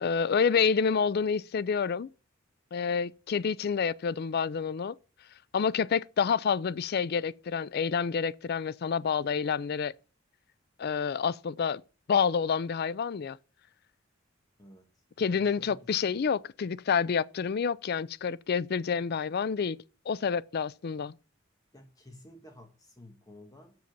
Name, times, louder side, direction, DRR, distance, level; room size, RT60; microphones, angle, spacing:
voice 1, 0.0-2.1 2.7-4.9 5.5-9.9 10.8-11.8 12.1-13.4 15.2-19.8 20.1-21.1, left 6 dB, 50° left, 0.4 m, -28 dB
voice 2, 15.2-16.2 21.7-23.7, left 1 dB, 20° left, 1.5 m, -52 dB
7.7 x 7.0 x 6.6 m
head